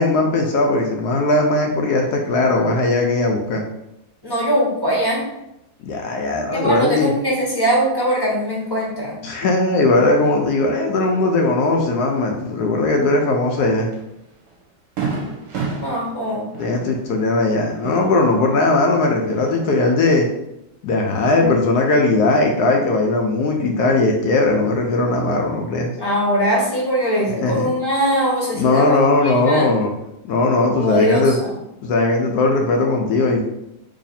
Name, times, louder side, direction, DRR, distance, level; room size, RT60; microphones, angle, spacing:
voice 1, 0.0-3.6 5.8-7.1 9.2-13.9 16.6-20.3 20.8-25.9 27.4-27.7 28.5-29.9 30.2-31.4 31.8-33.4, left 2 dB, 75° left, 2 dB, 0.9 m, -18 dB
voice 2, 4.2-5.2 6.5-9.2 15.8-16.4 26.0-29.7 30.8-31.5, equal, 20° left, -5 dB, 0.6 m, -21 dB
Fireworks, 13.9-14.1 14.5-14.6 15.0-18.7 19.0-19.9, right 4 dB, 65° right, 1.2 m, -30 dB
3.2 x 2.7 x 4.0 m, 0.85 s
omnidirectional pair, 2.1 m